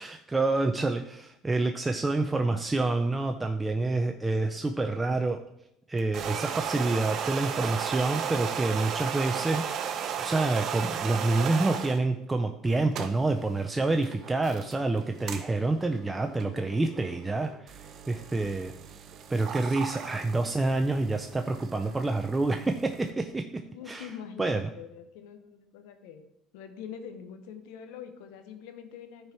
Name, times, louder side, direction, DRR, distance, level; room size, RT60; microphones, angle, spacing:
voice 1, 0.0-5.4 5.9-18.7 19.3-24.1 24.4-24.6, right 2 dB, 15° right, 5 dB, 0.5 m, -28 dB
voice 2, 4.5-5.0 23.5-26.3 26.5-29.3, left 8 dB, 80° left, 8 dB, 1.0 m, -45 dB
sound 1, 6.0-12.0 12.7-23.1, right 8 dB, 50° right, 0.7 m, -36 dB
10.5 x 4.6 x 4.5 m, 0.80 s
supercardioid pair, 110°, 0 cm